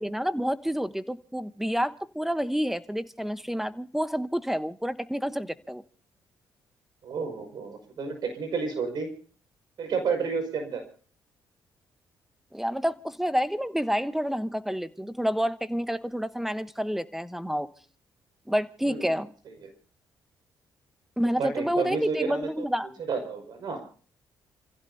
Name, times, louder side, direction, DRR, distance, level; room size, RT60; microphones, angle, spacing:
voice 1, 0.0-5.8 12.5-17.7 18.5-19.3 21.2-22.9, equal, 5° right, 1.0 m, -29 dB
voice 2, 7.0-9.1 9.8-10.8 18.9-19.1 19.6-19.7 21.4-22.7 23.1-23.8, right 5 dB, 65° right, 5.8 m, -31 dB
29.0 x 16.0 x 2.8 m
cardioid pair, 75°, 8 cm